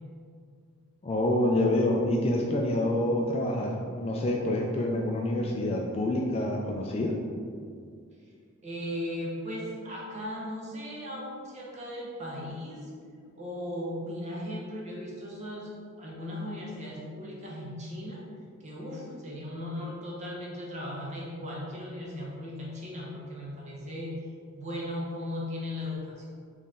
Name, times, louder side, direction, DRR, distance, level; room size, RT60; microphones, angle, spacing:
voice 1, 1.0-7.2, left 1 dB, 30° left, 0 dB, 0.3 m, -27 dB
voice 2, 8.6-12.9 13.4-18.2 18.6-24.1 24.5-26.3, left 1 dB, 30° right, -4 dB, 0.8 m, -37 dB
4.5 x 3.1 x 3.6 m, 2.2 s
head